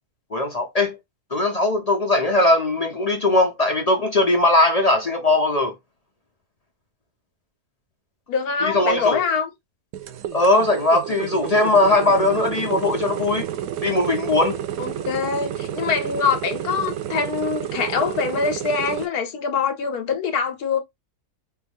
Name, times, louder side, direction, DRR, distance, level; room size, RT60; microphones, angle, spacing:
voice 1, 0.3-1.0 1.3-5.7 8.6-9.2 10.3-13.5 13.8-14.6, left 2 dB, 45° left, 0.4 m, -19 dB
voice 2, 8.3-9.5 14.8-20.8, left 5 dB, 70° left, 1.4 m, -24 dB
sound 1, 9.9-19.1, right 10 dB, 75° right, 1.0 m, -30 dB
4.4 x 2.4 x 3.4 m
omnidirectional pair, 1.7 m